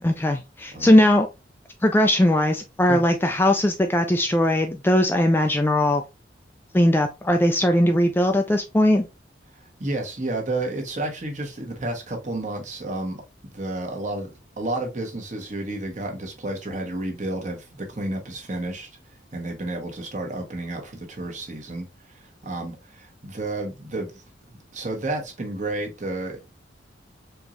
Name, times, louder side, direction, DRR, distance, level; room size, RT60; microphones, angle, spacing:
voice 1, 0.0-1.3 1.8-6.0 6.7-9.1, left 1 dB, 10° left, 0.4 m, -19 dB
voice 2, 9.5-13.2 13.5-14.3 14.6-18.9 19.3-24.2 24.7-26.4, right 2 dB, 40° right, 1.2 m, -31 dB
4.4 x 3.0 x 2.5 m
head